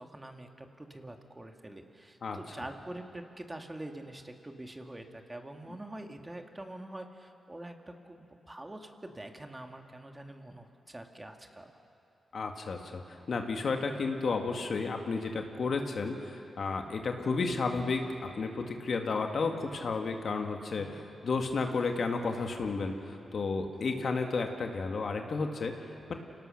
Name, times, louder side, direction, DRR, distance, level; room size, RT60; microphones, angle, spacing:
voice 1, 0.0-11.7 20.8-21.0 23.9-24.1, right 1 dB, 20° right, 4 dB, 2.2 m, -45 dB
voice 2, 12.3-13.0 13.3-25.8 26.1-26.2, left 4 dB, 65° left, 4 dB, 1.9 m, -32 dB
27.5 x 18.0 x 6.6 m, 2.8 s
supercardioid pair, 45°, 0 cm